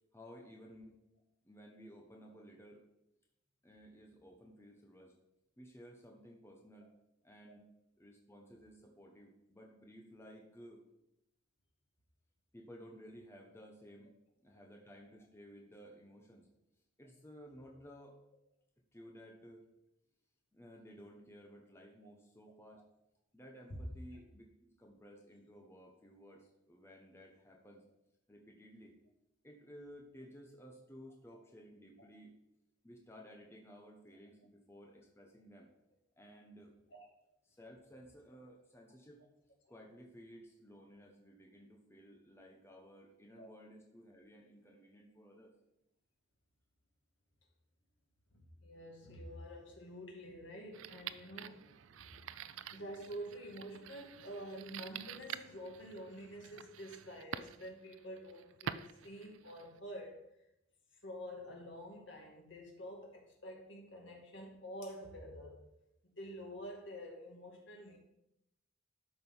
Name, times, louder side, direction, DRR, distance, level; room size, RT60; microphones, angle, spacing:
voice 1, 0.1-1.0 1.4-2.8 3.6-5.1 5.6-6.9 7.2-7.6 8.0-10.8 12.5-14.1 14.4-16.5 17.0-18.2 18.9-19.7 20.5-22.9 23.3-27.8 28.3-29.0 29.4-32.4 32.8-35.7 36.2-36.7 37.4-39.2 39.7-45.5, equal, 15° left, 0 dB, 1.1 m, -56 dB
voice 2, 48.3-51.6 51.9-52.1 52.5-60.2 61.0-65.6 66.2-68.0, equal, 70° left, 0 dB, 2.4 m, -48 dB
sound 1, 50.7-59.8, right 8 dB, 80° right, 0.5 m, -48 dB
12.5 x 5.1 x 5.6 m, 0.84 s
head